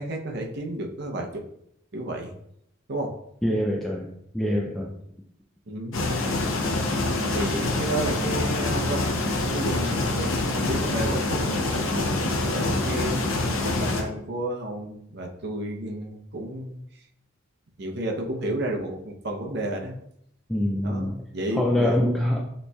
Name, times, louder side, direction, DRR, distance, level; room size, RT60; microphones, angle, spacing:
voice 1, 0.0-1.4 1.9-2.3 2.9-3.1 5.7-6.0 7.3-13.2 13.6-16.8 17.8-20.0 20.8-22.0, right 1 dB, 55° right, 2 dB, 0.7 m, -32 dB
voice 2, 3.4-4.1 4.3-4.9 20.5-21.1 21.5-22.4, left 1 dB, ahead, -2 dB, 0.3 m, -24 dB
sound 1, 5.9-14.0, left 2 dB, 85° left, 0.7 m, -26 dB
6.6 x 3.1 x 2.3 m, 0.74 s
head